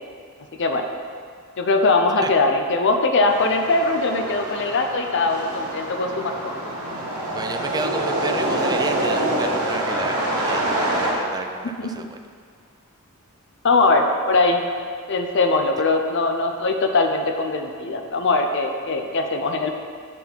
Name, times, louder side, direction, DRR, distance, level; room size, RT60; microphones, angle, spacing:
voice 1, 1.6-6.5 11.8-12.1 13.6-14.6 15.1-19.7, left 3 dB, 55° left, 5 dB, 0.6 m, -21 dB
sound 1, 3.3-11.1, right 1 dB, 90° right, 1.6 m, -26 dB
voice 2, 7.3-12.2, right 3 dB, 20° right, 6 dB, 0.4 m, -31 dB
8.2 x 4.4 x 5.4 m, 2.1 s
head